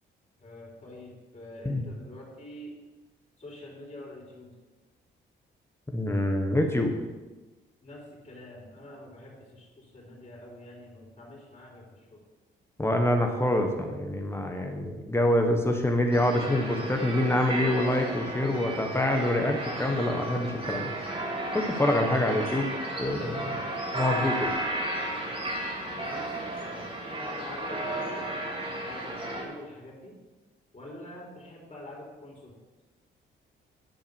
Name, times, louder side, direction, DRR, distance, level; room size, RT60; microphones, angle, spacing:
voice 1, 0.4-2.8 3.4-4.6 7.8-12.2 23.4-23.7 25.9-28.3 28.8-30.2 30.7-32.6, left 1 dB, 30° left, -3 dB, 4.1 m, -46 dB
voice 2, 5.9-6.9 12.8-20.9 21.5-22.7 23.0-23.6 23.9-24.5, left 1 dB, 10° left, 3 dB, 1.4 m, -26 dB
sound 1, 16.1-29.4, right 1 dB, 30° right, 2.7 m, -33 dB
10.5 x 5.8 x 7.1 m, 1.2 s
cardioid pair, 90°, 20 cm